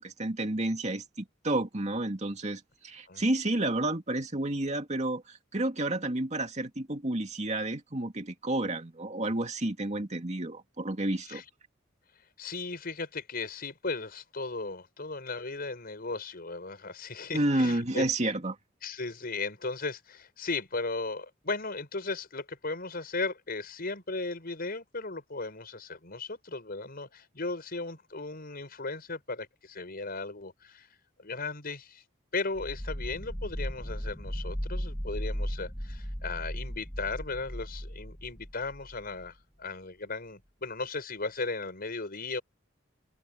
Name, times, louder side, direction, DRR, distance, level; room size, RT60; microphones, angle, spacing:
voice 1, 0.0-11.4 17.3-18.6, right 1 dB, 35° right, 2.3 m, -30 dB
voice 2, 12.4-18.0 18.8-32.0 32.3-42.4, left 3 dB, 50° left, 5.4 m, -36 dB
sound 1, 32.6-39.3, equal, 5° left, 1.3 m, -36 dB
open air
head